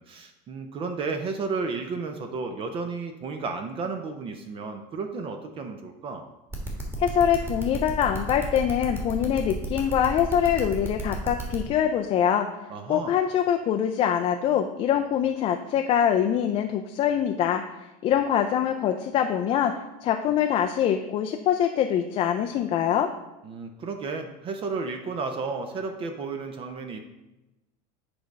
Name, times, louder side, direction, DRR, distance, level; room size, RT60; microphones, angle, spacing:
voice 1, 0.0-6.3 12.7-13.2 23.4-27.0, right 4 dB, 30° right, 6 dB, 0.5 m, -33 dB
sound 1, 6.5-11.6, right 2 dB, 10° right, 1.5 m, -33 dB
voice 2, 7.0-12.5 12.9-19.7 20.0-23.1, left 9 dB, 30° left, 5 dB, 0.4 m, -24 dB
8.7 x 3.4 x 5.2 m, 0.99 s
supercardioid pair, 145°, 19 cm